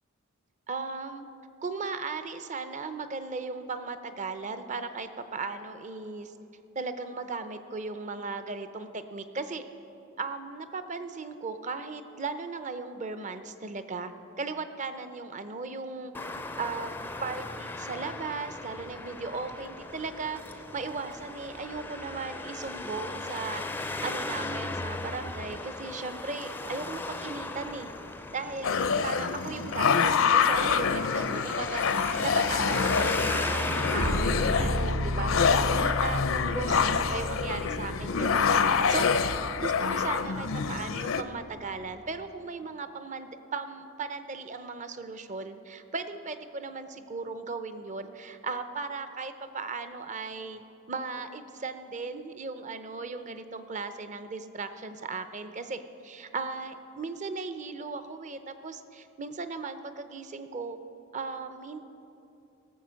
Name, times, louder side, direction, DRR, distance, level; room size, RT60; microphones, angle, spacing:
voice 1, 0.7-1.3 1.6-6.3 6.7-9.6 10.2-16.1 16.6-16.9 17.2-27.9 28.3-39.2 39.6-50.6 50.9-60.8 61.1-61.8, right 4 dB, 35° right, 10 dB, 0.6 m, -37 dB
Traffic noise roadway noise, 16.1-34.8, left 2 dB, 10° left, 0.4 m, -36 dB
sound 1, 28.6-41.2, left 6 dB, 70° left, 0.5 m, -26 dB
sound 2, 34.0-41.7, equal, 65° right, 3.8 m, -34 dB
18.0 x 7.4 x 6.4 m, 2.8 s
head